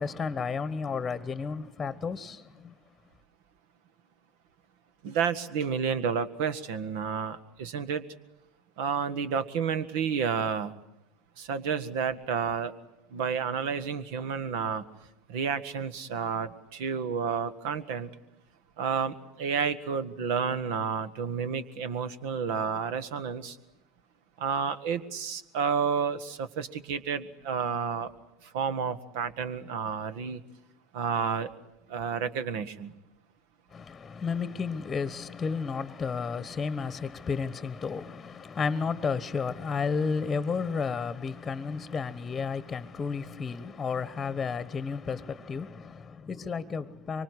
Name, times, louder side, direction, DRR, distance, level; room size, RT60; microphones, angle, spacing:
voice 1, 0.0-2.7 33.7-47.2, left 5 dB, 20° left, 1.2 m, -32 dB
voice 2, 5.0-8.0 8.8-10.7 11.4-12.7 13.1-14.8 15.3-18.1 18.8-23.6 24.4-28.1 28.4-30.4 30.9-31.5 31.9-32.9, right 6 dB, 60° right, 1.5 m, -30 dB
24.5 x 24.5 x 9.7 m
figure-of-eight pair, 75°, 0 cm